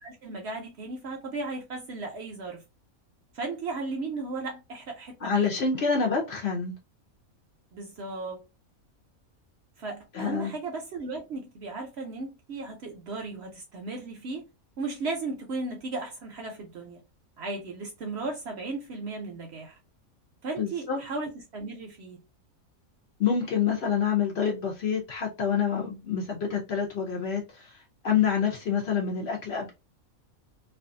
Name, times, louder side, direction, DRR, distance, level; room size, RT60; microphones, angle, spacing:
voice 1, 0.0-2.6 3.3-5.5 7.7-8.4 9.8-14.4 14.8-17.0 17.4-19.8 20.4-22.2, right 3 dB, 60° right, 0.7 m, -36 dB
voice 2, 5.2-6.7 10.1-10.5 20.6-21.0 23.2-27.8 28.0-29.7, left 6 dB, 60° left, 0.7 m, -27 dB
2.5 x 2.3 x 2.5 m
omnidirectional pair, 1.5 m